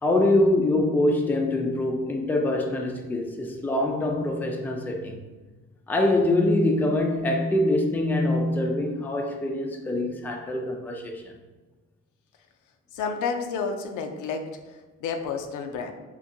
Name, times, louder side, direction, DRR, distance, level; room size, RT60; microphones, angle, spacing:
voice 1, 0.0-5.2 5.9-11.3, left 1 dB, 5° left, 2 dB, 0.3 m, -24 dB
voice 2, 12.9-14.6 15.0-15.9, left 5 dB, 80° left, 5 dB, 0.5 m, -30 dB
3.7 x 2.5 x 2.6 m, 1.2 s
cardioid pair, 90°, 30 cm